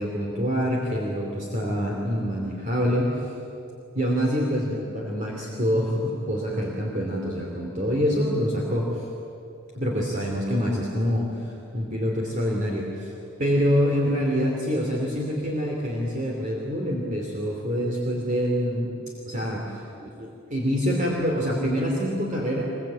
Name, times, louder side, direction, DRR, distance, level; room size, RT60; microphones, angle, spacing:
voice 1, 0.0-3.3 3.9-9.1 9.7-13.1 13.4-18.9 19.3-22.6, equal, 35° right, -1 dB, 3.1 m, -26 dB
24.0 x 22.5 x 8.7 m, 2.8 s
head